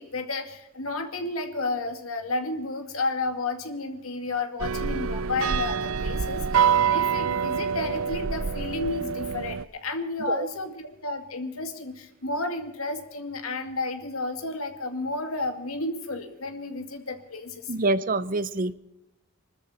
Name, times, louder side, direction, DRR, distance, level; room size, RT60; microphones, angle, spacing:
voice 1, 0.0-17.7, left 3 dB, 90° left, 7 dB, 2.2 m, -32 dB
sound 1, 4.6-9.6, right 7 dB, 75° right, 0.6 m, -26 dB
voice 2, 17.7-18.7, right 2 dB, 40° right, 15 dB, 0.7 m, -26 dB
25.0 x 13.5 x 4.4 m, 0.86 s
head